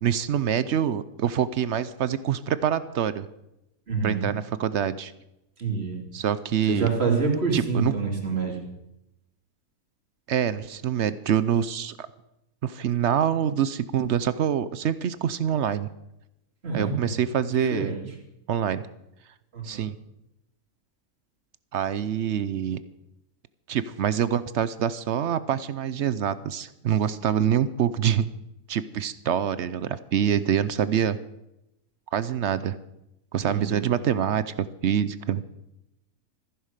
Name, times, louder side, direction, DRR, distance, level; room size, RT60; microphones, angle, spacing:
voice 1, 0.0-3.3 4.0-5.1 6.1-6.9 7.5-7.9 10.3-12.1 12.6-15.9 16.7-17.9 18.5-18.9 19.6-20.0 21.7-22.8 23.7-28.3 28.7-31.2 32.1-32.8 33.3-35.4, right 9 dB, 60° right, 15 dB, 0.8 m, -25 dB
voice 2, 3.9-4.3 5.6-6.0 6.7-8.6 16.6-17.1 17.5-18.0 19.5-19.9 33.5-33.8, right 4 dB, 40° right, 1 dB, 2.9 m, -27 dB
14.5 x 10.5 x 6.6 m, 0.87 s
omnidirectional pair, 1.6 m